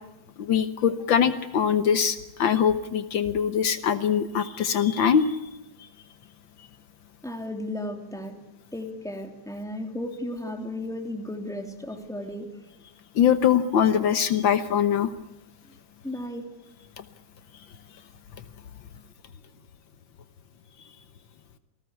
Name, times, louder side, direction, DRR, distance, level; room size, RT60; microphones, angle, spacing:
voice 1, 0.4-5.4 13.2-15.1, left 8 dB, 75° left, 11 dB, 1.8 m, -22 dB
voice 2, 7.2-8.4 8.7-12.5 15.6-15.7 16.0-16.5, left 1 dB, ahead, 4 dB, 3.1 m, -34 dB
28.0 x 19.0 x 8.3 m, 0.94 s
omnidirectional pair, 2.2 m